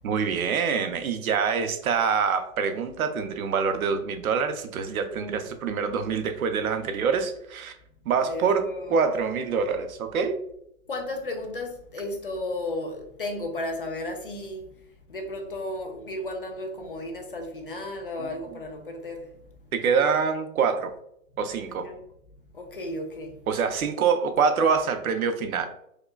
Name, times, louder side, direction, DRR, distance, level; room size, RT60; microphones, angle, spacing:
voice 1, 0.0-7.7 8.1-10.4 18.2-18.3 19.7-20.9 21.4-21.9 23.5-25.7, right 6 dB, 75° right, 0.7 m, -25 dB
voice 2, 5.1-5.5 8.2-9.0 10.9-14.7 15.1-19.4 21.7-22.0 22.5-23.4, left 1 dB, 40° left, 0.4 m, -34 dB
4.8 x 2.2 x 2.2 m
hypercardioid pair, 175°, 42 cm